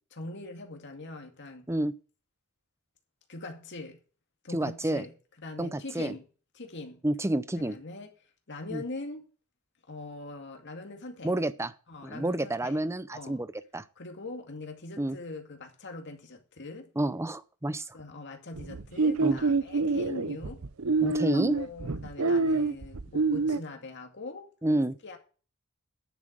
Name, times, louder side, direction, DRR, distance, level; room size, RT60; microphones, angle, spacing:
voice 1, 0.2-1.7 3.3-4.0 4.4-5.1 5.4-6.3 6.5-7.0 7.6-8.1 8.5-9.2 9.9-11.3 11.9-12.8 13.1-13.4 14.0-16.9 17.9-20.6 21.3-24.5 25.0-25.2, left 2 dB, 55° left, 2.3 m, -42 dB
voice 2, 4.5-5.1 5.6-6.1 7.0-7.8 8.7-8.8 11.2-11.7 12.0-13.5 13.7-13.8 15.0-15.2 17.0-17.9 19.2-19.4 21.0-21.6 24.6-25.0, right 1 dB, 15° right, 0.6 m, -29 dB
sound 1, 18.6-23.6, right 3 dB, 70° right, 0.7 m, -26 dB
10.5 x 7.3 x 6.4 m
head